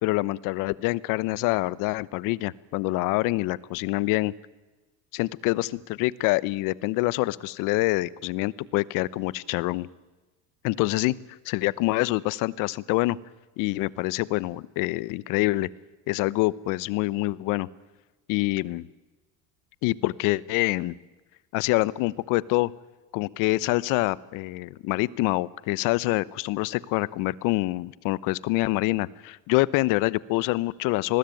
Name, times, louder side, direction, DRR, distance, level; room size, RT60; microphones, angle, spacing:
voice 1, 0.0-4.3 5.1-9.9 10.6-11.1 11.4-13.2 13.6-15.7 16.1-17.7 18.3-18.9 19.8-20.9 21.5-22.7 23.1-31.2, left 20 dB, 70° left, 21 dB, 1.0 m, -26 dB
28.0 x 20.5 x 9.2 m, 1.2 s
cardioid pair, 130°, 33 cm